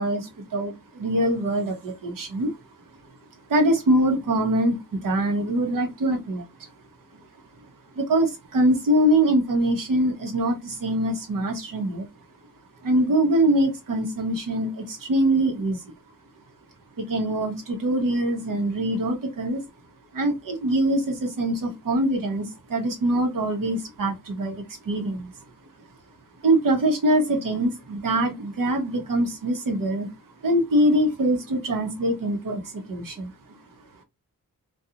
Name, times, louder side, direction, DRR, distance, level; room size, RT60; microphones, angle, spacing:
voice 1, 0.0-2.6 3.5-6.7 7.9-12.1 12.8-15.8 17.0-19.6 20.1-25.4 26.4-30.1 30.4-33.3, right 1 dB, 85° right, 0.9 m, -23 dB
2.8 x 2.3 x 2.4 m
wide cardioid pair, 120°, 32 cm